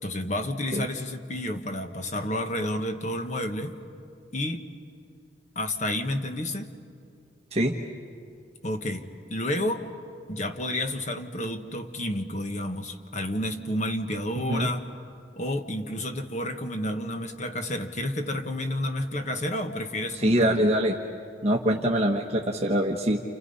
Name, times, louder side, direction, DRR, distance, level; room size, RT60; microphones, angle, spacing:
voice 1, 0.0-3.8 4.3-4.6 5.5-6.7 8.6-9.9 10.3-14.9 15.4-20.6, left 1 dB, 40° left, 6 dB, 1.5 m, -30 dB
voice 2, 20.2-20.9 21.4-23.2, equal, 35° right, 0 dB, 1.2 m, -23 dB
29.5 x 29.0 x 5.6 m, 2.3 s
head